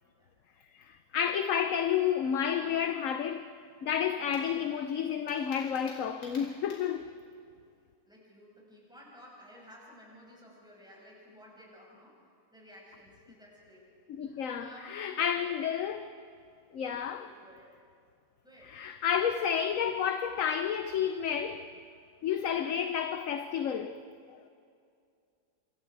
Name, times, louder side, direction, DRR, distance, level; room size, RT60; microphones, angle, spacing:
voice 1, 0.7-3.5 3.8-7.1 14.2-16.1 16.7-17.3 18.7-21.7 22.2-24.0 24.3-24.4, left 8 dB, 60° left, 1.0 m, -31 dB
sound 1, 4.3-7.0, left 1 dB, 80° left, 5.4 m, -52 dB
voice 2, 8.0-13.9 14.2-15.6 16.9-17.8 18.4-18.8, equal, ahead, 6.3 m, -54 dB
27.0 x 27.0 x 4.8 m
omnidirectional pair, 1.8 m